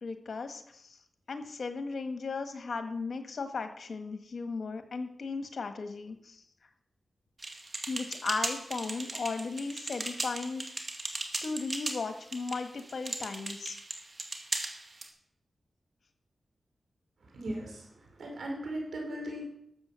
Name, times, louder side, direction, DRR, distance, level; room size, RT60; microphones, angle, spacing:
voice 1, 0.0-1.0 1.3-6.4 7.9-10.7 11.4-13.7, left 4 dB, 70° left, 7 dB, 1.6 m, -36 dB
sound 1, 7.4-15.1, right 2 dB, 45° right, 2.1 m, -38 dB
voice 2, 17.3-19.4, right 1 dB, 75° right, 0 dB, 4.9 m, -38 dB
13.0 x 7.6 x 7.0 m, 0.73 s
cardioid pair, 55°, 0 cm